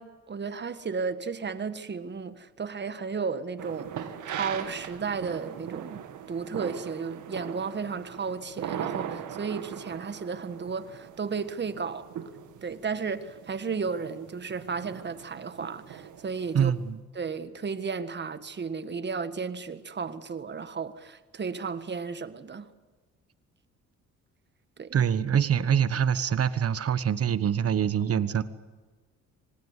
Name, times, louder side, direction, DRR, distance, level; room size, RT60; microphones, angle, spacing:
voice 1, 0.0-6.0 6.3-12.1 12.6-16.7 17.2-22.7 24.8-25.0, right 5 dB, 35° right, 1.7 m, -34 dB
sound 1, 3.6-16.7, right 9 dB, 75° right, 2.2 m, -40 dB
voice 2, 16.5-17.0 24.9-28.4, right 8 dB, 50° right, 1.3 m, -25 dB
25.5 x 19.0 x 8.3 m
cardioid pair, 90°, 30 cm